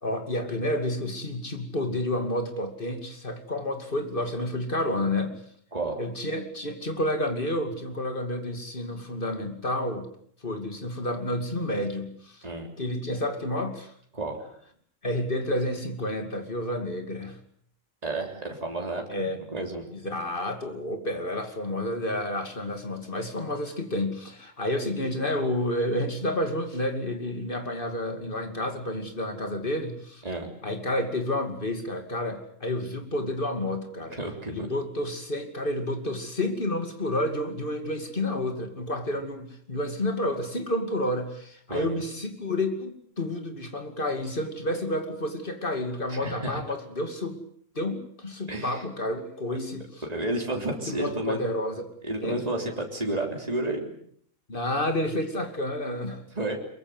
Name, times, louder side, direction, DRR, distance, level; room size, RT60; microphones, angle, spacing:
voice 1, 0.0-5.4 6.0-10.1 10.4-12.4 12.8-13.9 15.0-17.4 19.1-19.4 20.0-30.2 30.6-34.2 34.5-47.4 47.7-50.0 50.7-51.9 52.2-52.4 54.5-56.2, left 1 dB, 45° left, 6 dB, 2.9 m, -30 dB
voice 2, 5.7-6.0 12.4-12.7 14.1-14.4 18.0-19.9 30.2-30.5 34.1-34.7 41.7-42.0 46.1-46.6 48.5-48.8 50.0-51.4 52.0-54.0 56.4-56.6, right 2 dB, 30° right, 2 dB, 3.5 m, -31 dB
23.0 x 22.5 x 8.0 m, 0.63 s
omnidirectional pair, 1.3 m